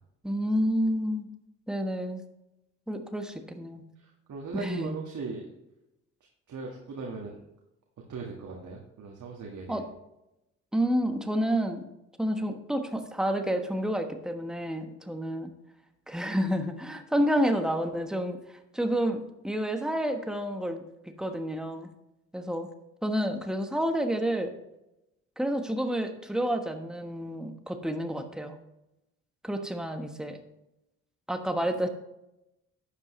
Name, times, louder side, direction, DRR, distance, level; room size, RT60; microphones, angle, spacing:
voice 1, 0.2-1.3 1.7-2.2 2.9-3.8 4.5-5.0 9.7-9.8 10.7-11.9 12.2-15.5 16.1-18.4 18.7-20.8 21.2-21.9 22.3-22.7 23.0-24.5 25.4-28.6 29.4-30.4 31.3-31.9, equal, ahead, 6 dB, 1.3 m, -29 dB
voice 2, 4.0-5.4 6.5-7.4 8.1-9.8, right 4 dB, 50° right, -2 dB, 1.8 m, -38 dB
11.5 x 8.3 x 3.2 m, 0.90 s
hypercardioid pair, 50°, 38 cm